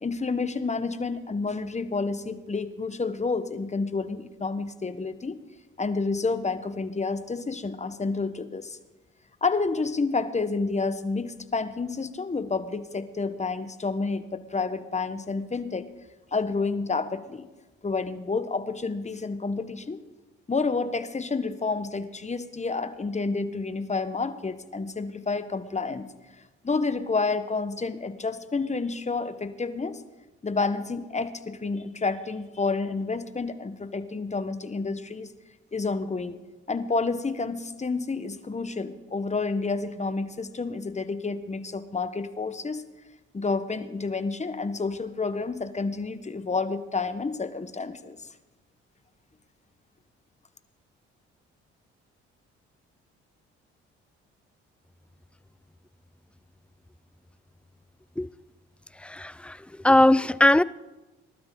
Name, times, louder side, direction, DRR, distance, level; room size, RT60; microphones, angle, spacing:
voice 1, 0.0-5.4 5.8-8.8 9.4-15.9 16.3-17.5 17.8-20.0 20.5-26.1 26.6-30.0 30.4-35.3 35.7-36.4 36.7-42.8 43.3-48.3, left 4 dB, 25° left, 11 dB, 1.2 m, -29 dB
voice 2, 59.0-59.6 59.8-60.6, left 1 dB, 5° left, 19 dB, 0.4 m, -19 dB
19.5 x 12.5 x 4.0 m, 1.1 s
supercardioid pair, 55°, 29 cm